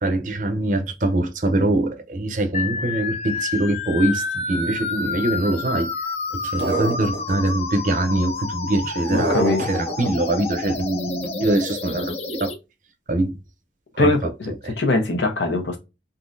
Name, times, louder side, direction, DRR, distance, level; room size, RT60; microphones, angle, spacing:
voice 1, 0.0-5.9 6.3-12.5 13.1-13.4 13.9-14.1 14.6-14.7, right 1 dB, 45° right, 0.5 m, -23 dB
sound 1, 2.5-12.5, left 4 dB, 35° left, 0.4 m, -29 dB
sound 2, 6.6-7.5 9.1-10.1, right 2 dB, 85° right, 0.8 m, -25 dB
voice 2, 9.1-9.6 14.0-14.5 14.8-15.8, left 2 dB, 90° left, 1.0 m, -21 dB
3.7 x 2.7 x 2.5 m
head